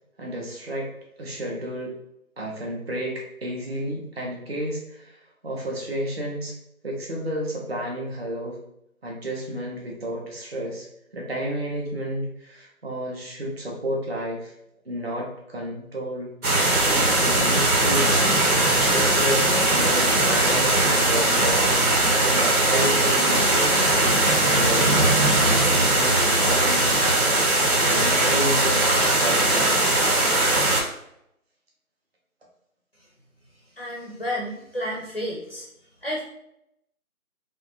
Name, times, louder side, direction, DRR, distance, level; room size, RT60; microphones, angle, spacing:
voice 1, 0.2-0.9 1.2-1.9 2.4-5.2 5.4-6.6 6.8-8.6 9.0-10.9 11.1-14.5 14.9-16.3 16.8-23.7 24.1-27.1 27.8-29.9, equal, 45° right, -2 dB, 0.5 m, -31 dB
sound 1, 16.4-30.8, right 2 dB, 90° right, 1.0 m, -20 dB
voice 2, 33.8-35.7 36.0-36.2, equal, 45° left, -4 dB, 0.4 m, -31 dB
2.6 x 2.2 x 2.6 m, 0.78 s
figure-of-eight pair, 165°, 43 cm